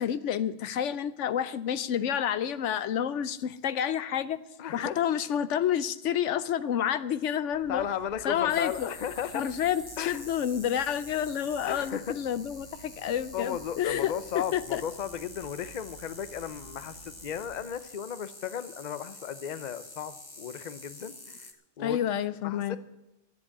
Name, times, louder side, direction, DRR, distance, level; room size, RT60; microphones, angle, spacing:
voice 1, 0.0-4.4 4.7-7.8 8.2-8.9 9.3-14.8 21.8-22.8, left 9 dB, 80° left, 14 dB, 1.0 m, -29 dB
voice 2, 4.6-5.0 7.7-9.5 10.0-10.2 11.6-12.2 13.3-21.5 21.8-22.0 22.4-22.8, left 9 dB, 45° left, 13 dB, 0.7 m, -35 dB
sound 1, 7.5-17.7, right 6 dB, 75° right, 1.6 m, -53 dB
sound 2, 8.5-21.5, left 2 dB, 20° left, 1.2 m, -47 dB
13.0 x 7.9 x 8.4 m, 0.93 s
omnidirectional pair, 1.2 m